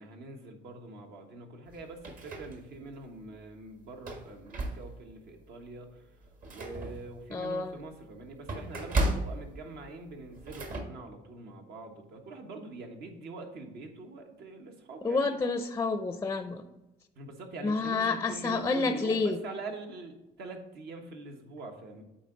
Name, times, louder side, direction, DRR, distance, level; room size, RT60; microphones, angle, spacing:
voice 1, 0.0-6.2 6.5-15.4 17.1-22.0, right 3 dB, 70° right, 1.3 m, -44 dB
sound 1, 1.7-3.0 3.4-3.5 3.9-5.2 5.6-5.8 6.1-10.8, right 1 dB, 50° right, 1.5 m, -35 dB
voice 2, 7.3-7.8 15.0-16.6 17.6-19.4, left 3 dB, 15° left, 0.4 m, -29 dB
8.5 x 4.0 x 3.8 m
cardioid pair, 110°, 17 cm